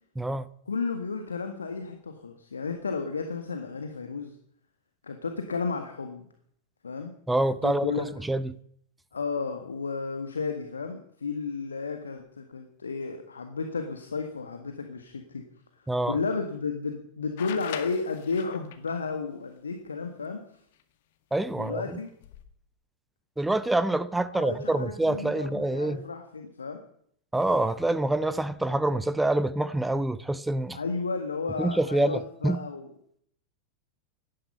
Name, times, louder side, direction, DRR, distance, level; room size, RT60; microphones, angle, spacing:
voice 1, 0.7-4.4 5.0-6.3 6.8-7.1 7.6-8.1 9.1-15.4 15.8-20.4 21.6-22.1 24.3-26.8 30.7-32.9, left 4 dB, 75° left, 1.7 m, -33 dB
voice 2, 7.3-8.5 15.9-16.2 21.3-22.0 23.4-26.1 27.3-30.8 31.6-32.6, right 1 dB, 5° right, 0.7 m, -26 dB
sound 1, 17.4-18.9 20.8-20.9 22.1-22.4, left 10 dB, 55° left, 1.8 m, -41 dB
17.5 x 12.5 x 5.6 m
figure-of-eight pair, 90°, 0 cm